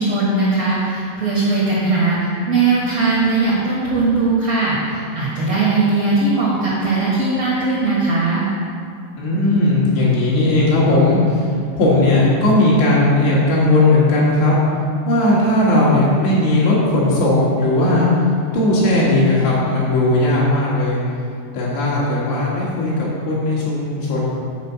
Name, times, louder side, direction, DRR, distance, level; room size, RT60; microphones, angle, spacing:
voice 1, 0.0-8.4, right 3 dB, 55° right, -8 dB, 1.9 m, -19 dB
voice 2, 9.2-11.5 11.8-14.6 15.1-18.1 18.5-21.0 21.5-24.3, left 2 dB, 75° left, -6 dB, 4.2 m, -16 dB
8.2 x 5.2 x 7.1 m, 2.4 s
omnidirectional pair, 5.0 m